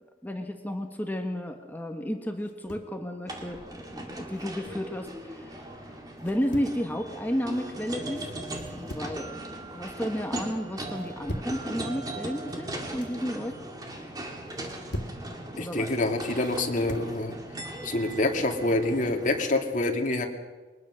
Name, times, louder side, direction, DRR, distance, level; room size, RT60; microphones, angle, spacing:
voice 1, 0.2-5.7 6.2-8.3 8.7-13.8 15.5-16.0, equal, 10° left, 5 dB, 1.3 m, -32 dB
sound 1, 2.4-3.0 4.3-4.9 6.2-6.8 8.5-9.2 9.6-10.1 10.9-11.6 12.7-13.2 14.5-15.2 16.4-17.1, equal, 90° left, 2.1 m, -41 dB
sound 2, 3.3-19.5, right 1 dB, 20° right, 2.3 m, -39 dB
voice 2, 15.6-17.4 17.8-20.3, left 2 dB, 45° left, 3 dB, 2.2 m, -26 dB
22.5 x 20.0 x 6.2 m, 1.3 s
head